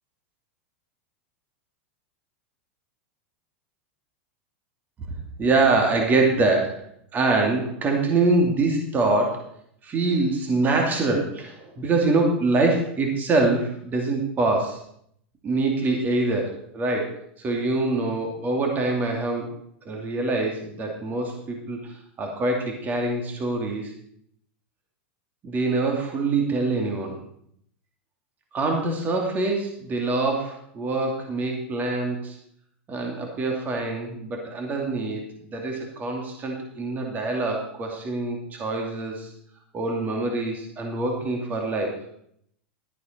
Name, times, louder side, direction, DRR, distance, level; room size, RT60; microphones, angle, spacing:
voice 1, 5.4-6.8 7.1-9.5 9.8-14.8 15.4-19.5 19.8-23.9 25.4-27.2 28.5-32.4 32.9-39.3 39.7-42.1, right 3 dB, 30° right, 1 dB, 2.8 m, -25 dB
12.0 x 9.9 x 4.6 m, 0.68 s
supercardioid pair, 120°, 6 cm